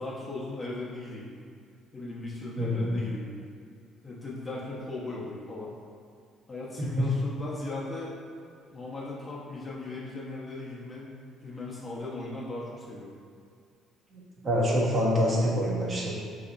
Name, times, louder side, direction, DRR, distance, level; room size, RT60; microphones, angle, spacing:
voice 1, 0.0-1.3 1.9-3.3 4.0-5.7 6.5-8.1 8.7-11.1 11.4-13.1, left 2 dB, 25° left, -6 dB, 0.7 m, -37 dB
voice 2, 2.6-3.0 6.8-7.1 14.1-16.1, equal, 40° right, -5 dB, 0.7 m, -26 dB
3.4 x 2.8 x 2.5 m, 2.2 s
cardioid pair, 95°, 0 cm